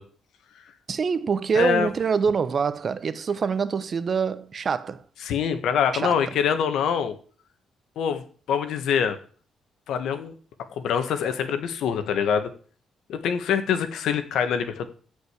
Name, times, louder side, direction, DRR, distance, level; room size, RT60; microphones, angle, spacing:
voice 1, 0.9-5.0 5.9-6.1, right 6 dB, 45° right, 1.1 m, -25 dB
voice 2, 1.6-1.9 5.3-7.1 8.0-9.2 9.9-10.3 10.8-12.5 13.1-14.9, left 7 dB, 75° left, 1.7 m, -24 dB
14.5 x 5.3 x 8.4 m
cardioid pair, 90°, 0 cm